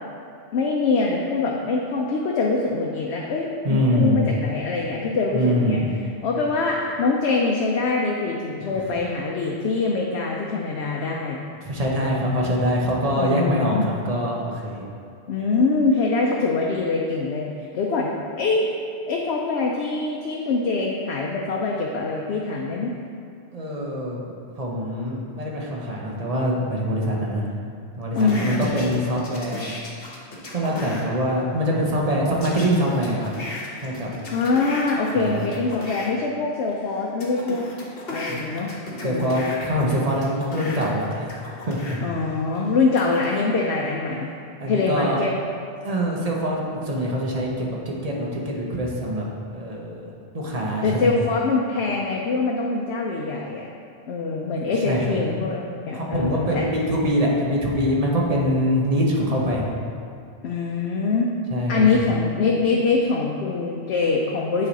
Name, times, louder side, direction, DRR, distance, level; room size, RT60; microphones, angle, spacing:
voice 1, 0.5-5.8 6.2-11.4 13.1-13.8 15.3-17.5 17.7-18.7 19.1-22.9 28.1-28.8 34.3-37.7 38.1-38.7 39.0-39.3 42.0-44.3 44.7-45.3 50.8-53.7 54.1-56.6 60.4-61.3 61.7-64.7, left 3 dB, 80° left, -1 dB, 0.9 m, -24 dB
voice 2, 3.6-4.2 5.3-5.8 8.7-8.8 11.6-13.8 14.0-14.8 23.5-24.2 24.6-27.5 28.0-29.7 30.5-33.3 33.8-34.1 35.2-35.5 38.3-38.4 39.0-42.0 44.6-45.2 45.8-51.1 54.7-55.1 55.9-59.7 61.5-61.9, equal, 40° right, -3 dB, 0.9 m, -24 dB
sound 1, 28.2-31.0 32.4-36.1 36.7-42.0 42.5-43.4, left 2 dB, 65° left, 1.2 m, -35 dB
8.8 x 3.1 x 4.0 m, 2.5 s
omnidirectional pair, 1.1 m